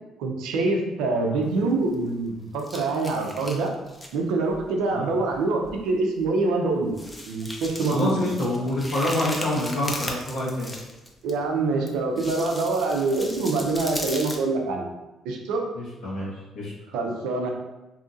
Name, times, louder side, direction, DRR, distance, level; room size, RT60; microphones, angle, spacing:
voice 1, 0.2-3.7 4.1-6.9 7.3-8.1 11.2-14.9 15.2-15.7 16.9-17.5, right 3 dB, 80° right, 1 dB, 0.5 m, -25 dB
sound 1, 1.5-2.3 2.6-4.2 4.5-4.7 5.3-5.4 5.6-5.8 6.2-6.3 6.9-11.3 11.9-14.4, left 1 dB, 20° left, 0.5 m, -37 dB
voice 2, 7.9-10.7 15.7-16.3 16.5-16.7, left 1 dB, 70° left, -6 dB, 1.0 m, -26 dB
2.7 x 2.6 x 2.5 m, 1.0 s
hypercardioid pair, 55°, 0 cm